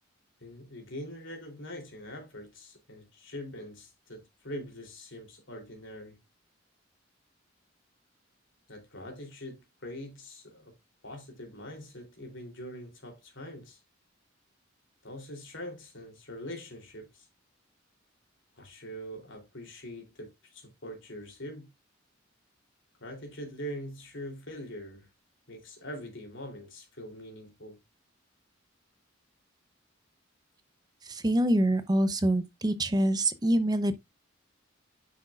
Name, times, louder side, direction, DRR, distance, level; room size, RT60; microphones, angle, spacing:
voice 1, 0.4-6.2 8.7-10.7 11.0-13.8 15.0-17.3 18.6-21.7 23.0-25.1 25.5-27.8, equal, 65° left, 3.2 m, -43 dB
voice 2, 31.0-33.9, right 1 dB, 20° right, 0.7 m, -25 dB
10.5 x 6.2 x 2.4 m
head